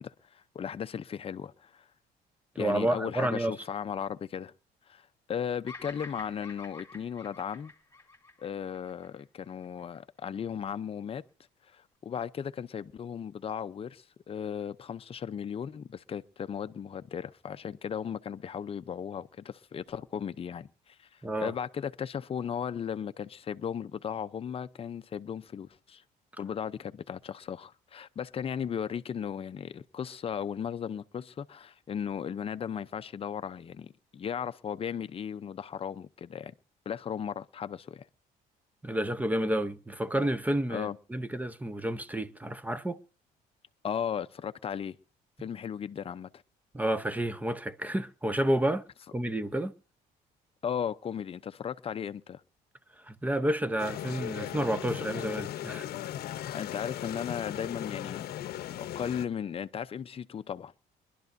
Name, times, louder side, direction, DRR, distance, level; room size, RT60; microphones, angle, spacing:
voice 1, 0.0-1.8 2.6-4.5 4.9-7.7 8.4-11.2 11.7-21.1 21.4-26.0 26.4-36.5 36.9-38.1 40.7-41.0 43.8-45.0 45.4-46.3 50.6-52.4 56.5-58.2 58.7-60.7, left 8 dB, 35° left, 0.6 m, -36 dB
voice 2, 2.6-3.6 21.2-21.5 38.8-43.0 46.7-49.7 53.0-55.9, right 1 dB, 10° right, 0.8 m, -30 dB
Bird vocalization bird call bird song, 5.7-10.0, left 2 dB, 15° left, 2.8 m, -48 dB
sound 1, 53.8-59.3, left 12 dB, 65° left, 0.8 m, -37 dB
24.0 x 12.0 x 2.6 m
cardioid pair, 110°, 17 cm